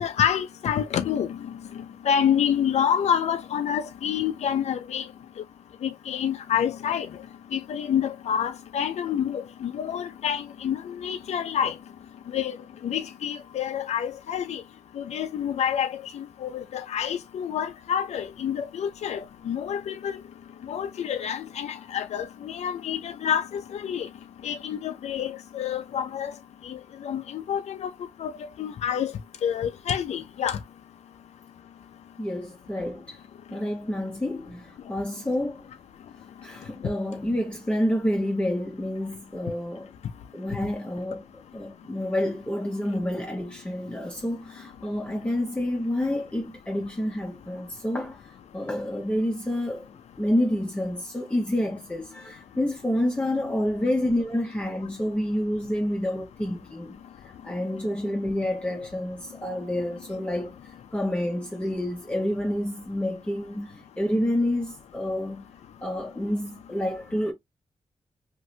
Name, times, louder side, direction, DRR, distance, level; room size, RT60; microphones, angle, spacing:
voice 1, 0.0-1.5 2.1-5.0 5.8-7.1 7.5-11.7 12.3-12.6 12.8-14.6 15.0-20.2 20.7-24.1 24.4-26.3 26.6-26.8 27.0-27.9 28.2-28.3 28.6-29.1 29.4-30.6, left 9 dB, 80° left, 0.4 m, -28 dB
voice 2, 32.2-33.2 33.5-35.6 36.4-39.9 40.3-48.2 48.5-49.9 50.2-56.9 57.4-60.6 60.9-65.5 65.8-67.3, left 1 dB, 10° left, 0.8 m, -28 dB
2.7 x 2.5 x 3.1 m
wide cardioid pair, 105°, 11 cm